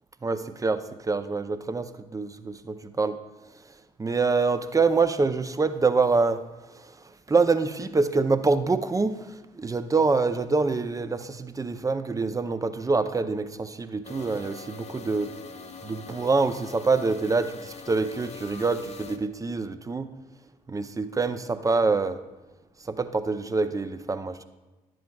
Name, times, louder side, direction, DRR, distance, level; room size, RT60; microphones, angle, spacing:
voice 1, 0.2-3.2 4.0-6.4 6.7-7.0 7.3-15.3 15.8-20.1 20.7-22.2 22.8-24.4, right 4 dB, 20° right, 10 dB, 0.6 m, -25 dB
sound 1, 14.0-19.2, left 5 dB, 35° left, 0.7 m, -43 dB
11.0 x 7.6 x 2.3 m, 1.1 s
hypercardioid pair, 45°, 18 cm